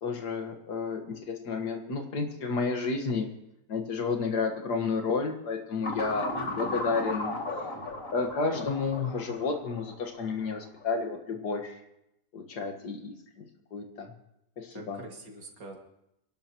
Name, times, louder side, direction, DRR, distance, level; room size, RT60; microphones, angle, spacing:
voice 1, 0.0-3.3 3.7-7.3 8.1-11.8 12.3-13.4 13.7-14.1 14.6-15.0, left 4 dB, 70° left, 5 dB, 2.2 m, -31 dB
sound 1, 5.8-10.9, left 2 dB, 50° left, 2.7 m, -36 dB
voice 2, 6.3-6.8 14.7-15.8, right 3 dB, 85° right, 1 dB, 3.0 m, -44 dB
25.5 x 12.0 x 3.0 m, 0.83 s
omnidirectional pair, 1.8 m